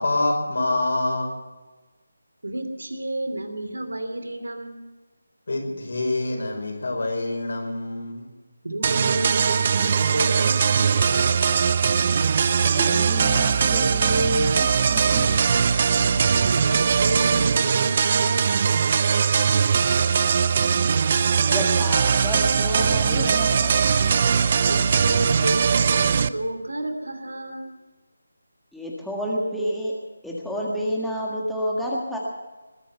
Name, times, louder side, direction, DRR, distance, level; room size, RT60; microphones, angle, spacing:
voice 1, 0.0-1.3 5.5-8.3, left 2 dB, 60° left, 2 dB, 5.3 m, -26 dB
voice 2, 2.4-4.9 8.6-11.4 16.0-18.5 24.6-27.7, right 1 dB, 80° right, 7 dB, 2.9 m, -30 dB
sound 1, 8.8-26.3, right 6 dB, 35° right, 0.5 m, -20 dB
voice 3, 12.7-15.3 20.6-20.8 21.5-23.8 28.7-32.2, equal, ahead, -5 dB, 1.7 m, -29 dB
20.5 x 10.0 x 6.8 m, 1.2 s
figure-of-eight pair, 160°, 0 cm